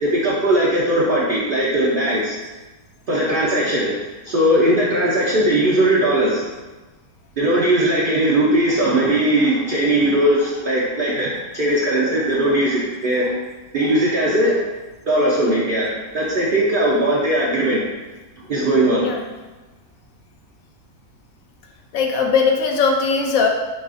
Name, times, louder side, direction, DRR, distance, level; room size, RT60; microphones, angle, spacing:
voice 1, 0.0-2.4 3.1-4.0 4.2-6.5 7.4-13.3 13.7-14.6 15.1-17.8 18.5-19.1, right 1 dB, 65° right, -6 dB, 0.5 m, -19 dB
voice 2, 21.9-23.5, left 5 dB, 65° left, 2 dB, 0.9 m, -19 dB
6.3 x 2.4 x 2.5 m, 1.2 s
omnidirectional pair, 1.7 m